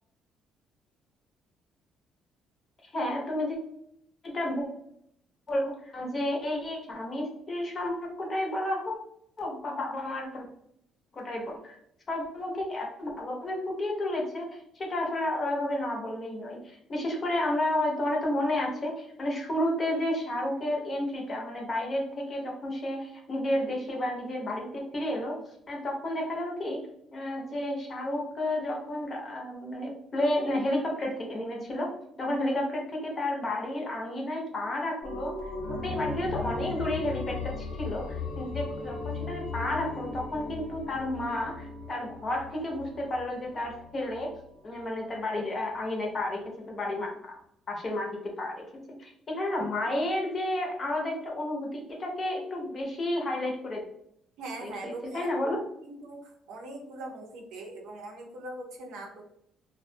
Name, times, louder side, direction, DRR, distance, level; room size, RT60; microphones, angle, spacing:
voice 1, 2.9-3.6 4.2-4.7 5.5-8.9 9.4-10.5 11.1-11.8 12.1-25.4 25.7-26.8 27.1-31.9 32.2-35.3 35.7-44.3 44.6-47.4 47.7-48.6 49.0-53.8 54.6-55.6, left 1 dB, 30° left, 0 dB, 0.6 m, -31 dB
sound 1, 35.0-44.4 44.7-44.8, left 3 dB, 75° left, 0.6 m, -37 dB
voice 2, 54.4-55.3 55.8-59.2, right 2 dB, 85° right, 0 dB, 0.6 m, -41 dB
2.3 x 2.1 x 2.6 m, 0.72 s
cardioid pair, 145°, 0 cm